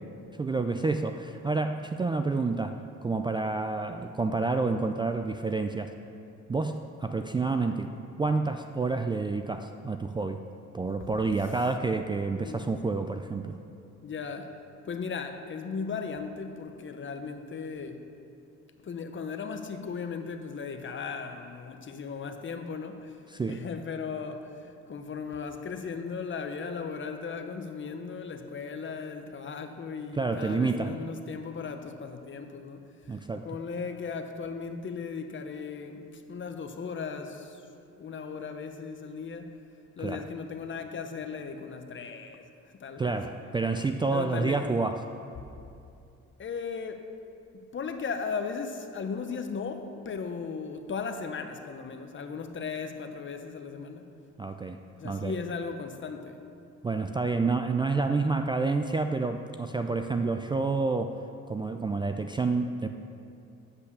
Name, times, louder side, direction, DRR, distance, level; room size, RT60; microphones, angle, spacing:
voice 1, 0.4-5.9 6.5-7.9 8.2-10.4 10.7-13.6 23.3-23.6 30.1-30.9 33.1-33.5 40.0-40.2 43.0-45.1 54.4-55.3 56.8-61.2 61.5-62.9, right 3 dB, 15° right, 6 dB, 0.3 m, -29 dB
voice 2, 12.3-12.7 14.0-14.6 14.8-18.0 18.8-23.2 23.5-32.8 33.4-37.6 37.9-39.6 40.0-43.1 44.1-44.6 45.4-45.5 46.4-47.1 47.5-54.0 55.0-56.4, left 5 dB, 40° left, 7 dB, 0.8 m, -37 dB
8.5 x 5.4 x 6.8 m, 2.6 s
cardioid pair, 90°, 30 cm